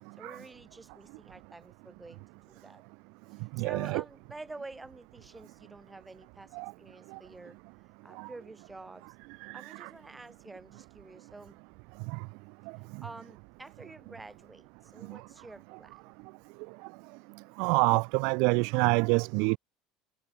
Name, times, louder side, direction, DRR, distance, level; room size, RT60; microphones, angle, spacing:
voice 1, 0.2-2.8 3.3-7.6 8.0-9.2 9.5-11.6 12.8-16.1, right 2 dB, 10° right, 6.9 m, -49 dB
voice 2, 3.6-4.0 6.6-6.7 8.2-8.3 9.4-9.5 9.8-9.9 15.1-15.2 17.6-19.6, right 33 dB, 70° right, 0.5 m, -26 dB
cardioid pair, 145°, 0 cm